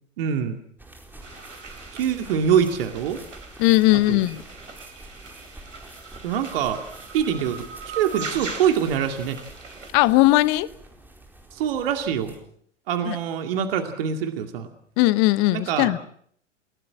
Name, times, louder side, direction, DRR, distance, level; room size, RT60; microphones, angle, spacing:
voice 1, 0.2-0.6 1.9-3.2 4.1-4.2 6.2-6.8 7.1-7.7 8.0-9.4 11.5-12.3 12.9-14.7 15.5-16.0, right 8 dB, 50° right, 2.5 m, -24 dB
sound 1, 0.8-12.4, right 1 dB, 5° right, 4.4 m, -47 dB
sound 2, 1.2-9.9, right 5 dB, 75° right, 4.0 m, -40 dB
voice 2, 3.6-4.4 9.9-10.7 13.1-13.2 15.0-16.0, left 18 dB, 30° left, 1.0 m, -18 dB
29.5 x 17.5 x 7.6 m
figure-of-eight pair, 100°, 37 cm